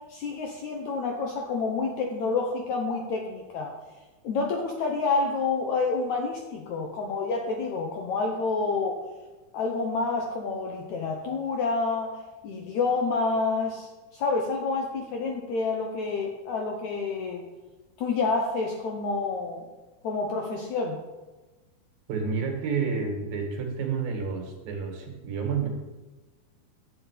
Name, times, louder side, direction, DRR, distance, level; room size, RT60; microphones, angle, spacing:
voice 1, 0.1-3.7 4.2-9.0 9.5-12.2 12.4-17.4 18.0-19.7 20.0-21.0, left 4 dB, 70° left, 1 dB, 1.8 m, -28 dB
voice 2, 22.1-25.7, right 5 dB, 70° right, 2 dB, 3.5 m, -30 dB
10.5 x 5.6 x 8.3 m, 1.2 s
omnidirectional pair, 4.4 m